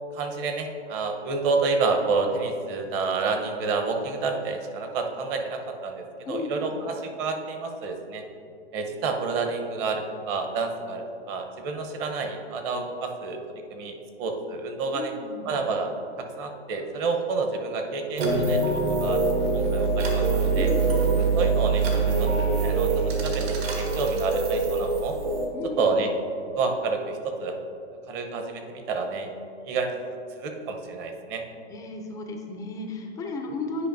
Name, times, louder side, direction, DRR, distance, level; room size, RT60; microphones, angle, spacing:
voice 1, 0.1-8.2 8.7-13.4 13.7-15.1 15.4-15.9 16.4-19.2 19.5-20.7 21.4-21.8 22.2-25.1 25.8-26.1 26.6-27.6 28.1-29.3 29.6-31.4, right 4 dB, 35° right, 4 dB, 0.8 m, -29 dB
voice 2, 6.3-6.8 14.9-15.6 20.6-21.2 25.5-25.9 31.7-33.9, left 2 dB, 10° left, 3 dB, 0.3 m, -34 dB
sound 1, 18.2-25.4, right 4 dB, 65° right, 1.5 m, -24 dB
9.9 x 5.0 x 2.6 m, 2.5 s
hypercardioid pair, 120°, 33 cm